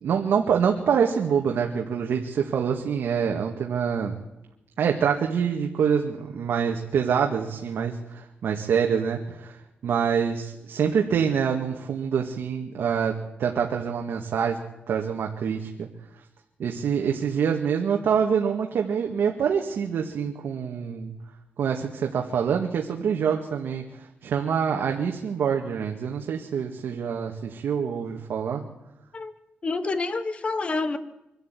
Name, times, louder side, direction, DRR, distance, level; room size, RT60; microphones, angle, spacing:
voice 1, 0.0-4.1 4.8-14.6 14.9-15.9 16.6-21.1 21.6-28.6, right 7 dB, 80° right, 2 dB, 1.9 m, -26 dB
voice 2, 29.6-31.0, left 3 dB, 30° left, 12 dB, 1.4 m, -28 dB
24.0 x 12.5 x 9.2 m, 0.90 s
wide cardioid pair, 155°, 4 cm